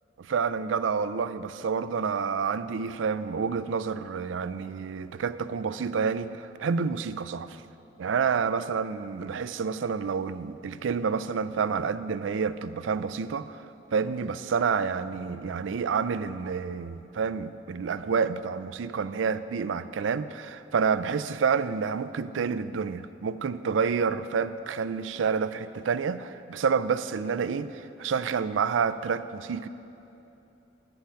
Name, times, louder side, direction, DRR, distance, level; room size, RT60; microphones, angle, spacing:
voice 1, 0.2-7.6 8.0-13.6 13.9-29.7, right 6 dB, 85° right, 14 dB, 0.4 m, -29 dB
11.0 x 5.8 x 8.9 m, 3.0 s
head